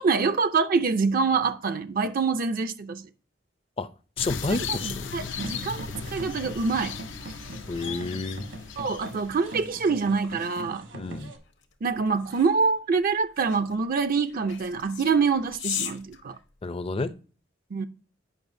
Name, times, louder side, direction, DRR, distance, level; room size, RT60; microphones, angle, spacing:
voice 1, 0.0-3.1 4.5-4.6 4.8-7.0 8.8-10.9 11.8-16.4 17.7-17.9, right 5 dB, 50° right, 0.5 m, -25 dB
sound 1, 4.2-9.9, left 6 dB, 85° left, 0.6 m, -37 dB
voice 2, 4.2-5.3 7.7-8.5 10.9-11.3 16.6-17.1, left 3 dB, 30° left, 0.5 m, -30 dB
sound 2, 5.2-11.4, right 2 dB, 75° right, 1.3 m, -41 dB
sound 3, 10.1-17.1, left 9 dB, 70° left, 1.0 m, -40 dB
8.7 x 5.5 x 2.6 m
head